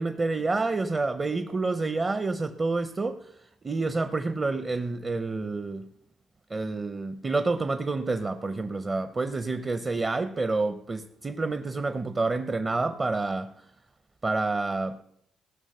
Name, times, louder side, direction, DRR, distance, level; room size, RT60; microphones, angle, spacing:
voice 1, 0.0-3.3 3.6-5.9 6.5-13.5 14.2-15.0, right 3 dB, 30° right, 0.7 m, -28 dB
16.5 x 6.3 x 6.6 m
cardioid pair, 90°, 0 cm